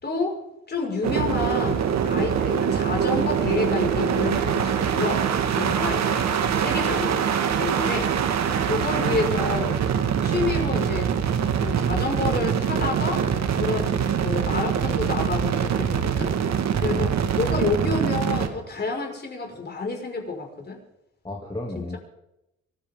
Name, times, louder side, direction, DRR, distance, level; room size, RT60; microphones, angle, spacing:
voice 1, 0.0-0.4 0.7-5.2 5.5-7.2 7.5-8.1 8.6-9.8 10.2-11.1 11.6-13.2 13.6-16.3 16.8-20.8 21.7-22.0, left 3 dB, 35° left, 1 dB, 5.7 m, -29 dB
sound 1, 1.0-18.5, right 8 dB, 60° right, 1.8 m, -24 dB
voice 2, 8.4-8.8 16.9-17.1 21.2-22.0, left 2 dB, 15° left, -2 dB, 2.8 m, -34 dB
25.0 x 14.5 x 3.8 m, 0.87 s
cardioid pair, 90°, 30 cm